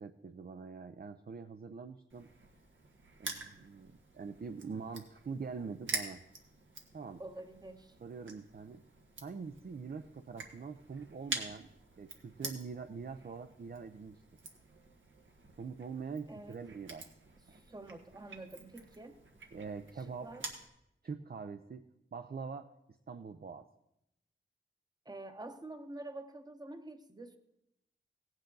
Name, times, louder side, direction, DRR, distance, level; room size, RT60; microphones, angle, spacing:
voice 1, 0.0-2.3 3.2-6.2 6.9-7.2 8.0-8.8 9.2-11.7 12.0-14.2 15.6-17.1 17.5-17.6 19.5-20.4 21.0-21.8 22.1-22.7 23.1-23.7, right 5 dB, 50° right, 8 dB, 0.6 m, -44 dB
Crushing, 2.1-20.7, right 3 dB, 80° right, 1.5 m, -47 dB
voice 2, 7.2-8.0 16.3-16.6 17.5-19.2 20.2-20.5 25.0-27.4, right 2 dB, 20° right, 7 dB, 0.9 m, -47 dB
16.5 x 9.0 x 3.9 m, 0.85 s
wide cardioid pair, 55°, 20 cm